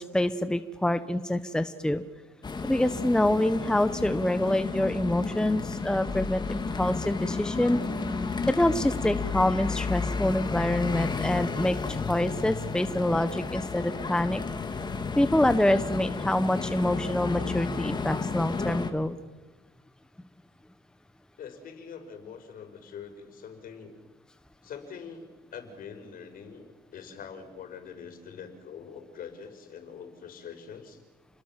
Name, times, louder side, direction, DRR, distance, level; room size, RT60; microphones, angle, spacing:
voice 1, 0.0-2.0 2.6-7.8 8.5-14.4 15.2-19.2, left 1 dB, 5° left, 10 dB, 1.1 m, -26 dB
sound 1, 2.4-18.9, left 4 dB, 25° left, 2.9 m, -32 dB
voice 2, 21.4-23.9 24.6-31.0, left 6 dB, 55° left, 7 dB, 5.6 m, -44 dB
30.0 x 21.5 x 7.6 m, 1.2 s
cardioid pair, 110°, 17 cm